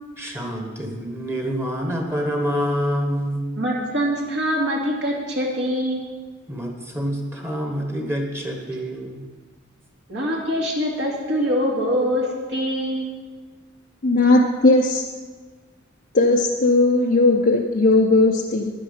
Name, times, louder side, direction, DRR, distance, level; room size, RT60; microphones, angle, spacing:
voice 1, 0.2-3.5 6.5-9.2, equal, 15° right, 2 dB, 1.4 m, -27 dB
voice 2, 3.6-6.0 10.1-13.1, equal, 60° right, -3 dB, 2.5 m, -24 dB
voice 3, 14.0-15.0 16.1-18.7, left 2 dB, 50° left, 0 dB, 0.7 m, -17 dB
11.0 x 10.0 x 5.7 m, 1.4 s
head